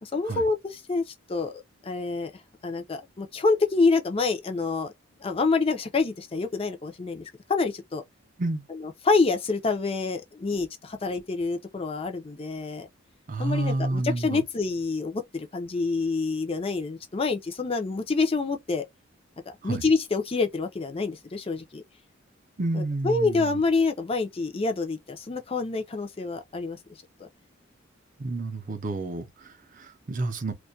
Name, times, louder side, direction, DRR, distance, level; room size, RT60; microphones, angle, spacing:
voice 1, 0.0-2.3 2.6-4.9 5.2-8.0 8.7-12.9 13.4-18.8 19.5-21.8 22.7-26.8, left 3 dB, 30° left, 0.4 m, -27 dB
voice 2, 13.3-14.4 19.6-19.8 22.6-23.6 28.2-30.5, right 2 dB, 40° right, 0.5 m, -30 dB
2.2 x 2.2 x 2.5 m
head